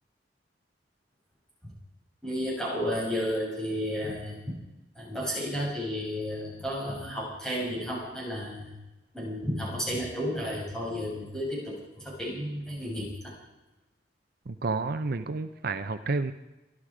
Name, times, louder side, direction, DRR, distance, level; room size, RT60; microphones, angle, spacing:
voice 1, 2.2-4.4 5.0-8.7 9.1-13.3, equal, 5° left, -6 dB, 7.4 m, -32 dB
voice 2, 14.5-16.3, right 3 dB, 60° right, 10 dB, 0.7 m, -30 dB
24.0 x 12.0 x 5.0 m, 1.0 s
head